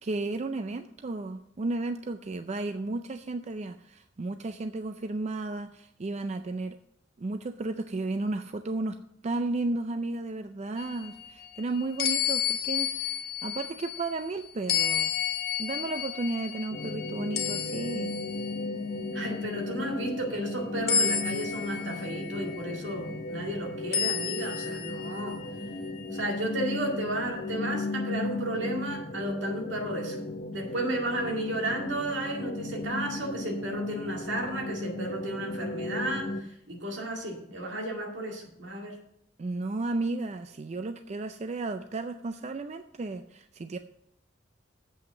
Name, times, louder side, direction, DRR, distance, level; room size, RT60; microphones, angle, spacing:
voice 1, 0.0-6.8 7.2-9.0 9.2-15.1 15.6-18.1 39.4-43.8, right 2 dB, 35° right, 8 dB, 0.4 m, -33 dB
sound 1, 10.8-14.2 14.7-18.6 19.1-19.4 20.9-23.0 23.9-25.9, left 8 dB, 55° left, 1.1 m, -31 dB
sound 2, 16.7-36.4, left 2 dB, 40° left, 0.8 m, -36 dB
voice 2, 19.1-25.4 26.1-30.2 30.5-39.0, right 1 dB, 75° right, 0 dB, 2.2 m, -33 dB
7.9 x 5.9 x 7.3 m, 0.75 s
head